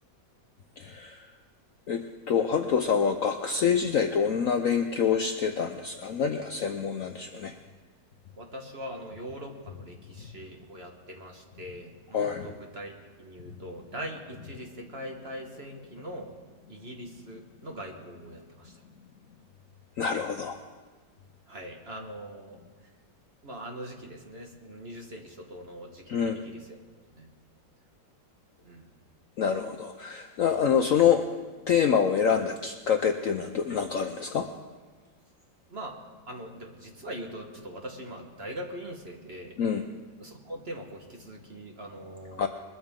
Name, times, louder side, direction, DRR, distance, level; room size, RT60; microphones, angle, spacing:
voice 1, 0.8-1.3 1.9-7.6 12.1-12.5 20.0-20.6 26.1-26.4 29.4-31.3 31.7-34.5 39.6-39.8 42.4-42.5, left 7 dB, 60° left, 5 dB, 0.9 m, -26 dB
voice 2, 8.4-16.3 16.7-18.8 21.5-22.6 23.4-26.8 27.1-27.3 28.6-28.9 35.7-36.0 36.3-39.6 40.2-42.5, right 1 dB, 35° right, 2 dB, 1.5 m, -42 dB
21.5 x 13.0 x 3.7 m, 1.4 s
omnidirectional pair, 2.0 m